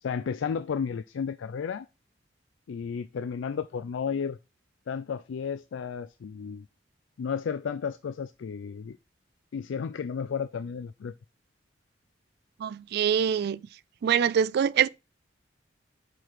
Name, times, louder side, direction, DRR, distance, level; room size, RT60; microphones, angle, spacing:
voice 1, 0.0-1.9 2.7-4.4 4.9-6.7 7.2-9.0 9.5-11.1, left 6 dB, 85° left, 0.4 m, -33 dB
voice 2, 12.6-13.6 14.0-14.9, right 8 dB, 60° right, 0.3 m, -24 dB
5.0 x 4.6 x 5.7 m
head